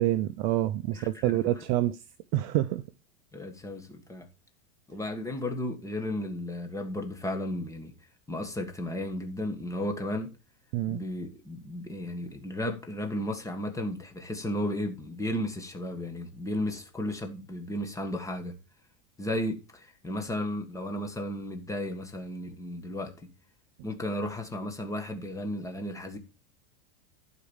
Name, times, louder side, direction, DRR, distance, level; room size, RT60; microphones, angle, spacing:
voice 1, 0.0-2.0 2.3-2.8 10.7-11.0, right 14 dB, 35° right, 0.5 m, -27 dB
voice 2, 0.9-1.4 3.3-4.3 4.9-7.9 8.3-10.3 10.9-18.5 19.2-23.3 23.8-26.2, left 1 dB, 10° left, 1.5 m, -34 dB
12.0 x 4.8 x 7.1 m
supercardioid pair, 160°, 41 cm